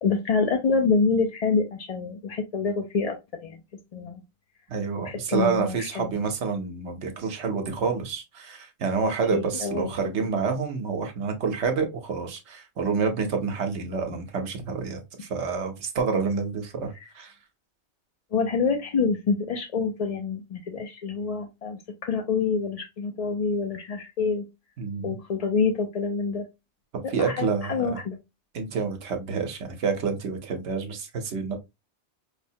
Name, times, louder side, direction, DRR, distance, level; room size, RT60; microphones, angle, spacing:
voice 1, 0.0-3.2 3.4-3.6 3.9-4.2 5.0-6.1 9.3-9.9 18.3-24.4 25.0-26.4 27.2-28.2, left 5 dB, 55° left, 0.4 m, -26 dB
voice 2, 4.7-17.3 24.8-25.1 27.1-28.0 28.5-31.6, right 5 dB, 75° right, 1.1 m, -28 dB
4.9 x 2.1 x 2.7 m
omnidirectional pair, 1.2 m